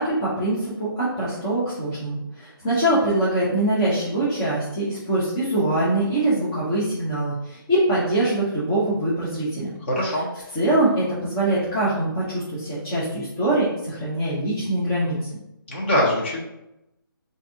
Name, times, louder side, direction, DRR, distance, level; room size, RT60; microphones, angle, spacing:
voice 1, 0.0-9.7 10.5-15.2, right 1 dB, 10° left, -10 dB, 0.5 m, -23 dB
voice 2, 9.9-10.3 15.7-16.4, left 1 dB, 30° left, -4 dB, 1.1 m, -22 dB
4.5 x 2.6 x 2.5 m, 0.89 s
hypercardioid pair, 170°, 12 cm